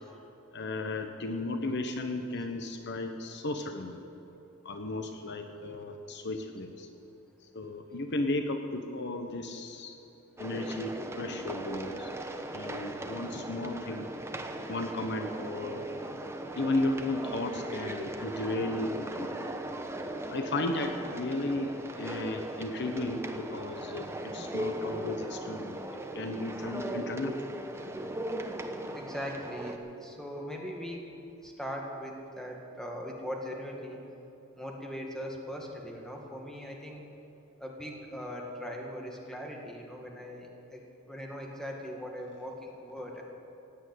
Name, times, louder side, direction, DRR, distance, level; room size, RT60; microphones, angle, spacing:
voice 1, 0.5-4.0 4.6-6.9 7.5-10.0 10.4-14.1 14.7-15.9 16.6-19.3 20.3-25.8 26.1-27.4, left 2 dB, 55° left, 6 dB, 1.0 m, -34 dB
sound 1, 10.4-29.8, right 1 dB, 15° right, 0.9 m, -38 dB
voice 2, 28.9-31.0 31.4-34.0 34.6-37.0 37.6-43.2, equal, 5° left, 0 dB, 2.0 m, -40 dB
16.5 x 9.0 x 9.1 m, 2.9 s
head